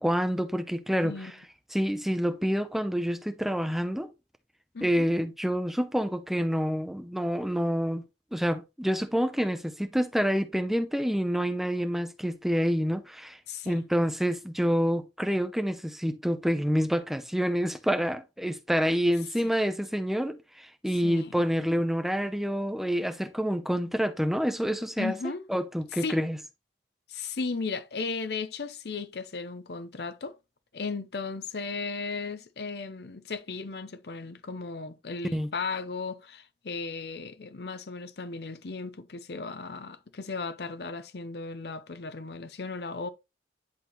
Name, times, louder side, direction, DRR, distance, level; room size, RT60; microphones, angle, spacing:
voice 1, 0.0-1.4 1.7-4.1 4.8-8.0 8.3-13.4 13.7-25.2 25.5-26.4 35.3-35.5, equal, ahead, 0.6 m, -27 dB
voice 2, 4.7-5.1 13.5-13.8 19.4-19.5 21.0-21.3 25.0-25.4 25.9-26.2 27.1-30.4 30.7-43.1, left 4 dB, 60° left, 0.6 m, -36 dB
10.5 x 4.1 x 3.0 m
head